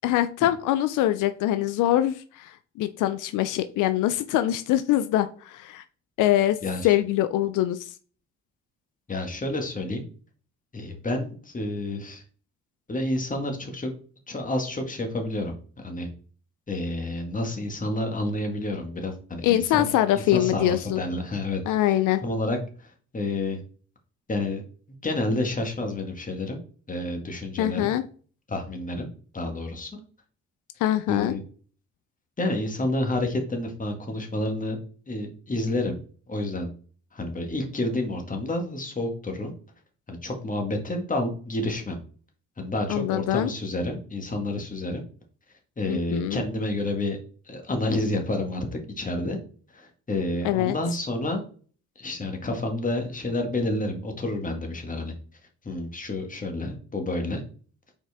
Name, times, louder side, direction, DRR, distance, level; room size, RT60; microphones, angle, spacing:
voice 1, 0.0-5.8 6.2-6.6 6.8-7.9 19.4-21.0 21.7-22.2 27.6-28.0 30.8-31.4 42.9-43.5 45.9-46.4 50.4-50.8, left 13 dB, 85° left, 11 dB, 0.5 m, -23 dB
voice 2, 6.6-6.9 9.1-10.0 10.7-12.2 12.9-13.9 14.3-16.1 16.7-19.9 20.1-21.6 21.9-23.6 24.3-24.6 24.9-26.6 26.9-27.9 28.5-29.1 29.3-29.9 31.1-31.4 32.4-34.8 35.1-36.0 36.3-36.7 37.1-39.5 40.1-42.0 42.6-45.0 45.8-47.2 47.5-49.4 49.7-51.4 52.0-55.1 55.6-57.4, left 2 dB, 25° left, 3 dB, 1.8 m, -29 dB
5.7 x 4.6 x 3.5 m, 0.42 s
cardioid pair, 90°, 30 cm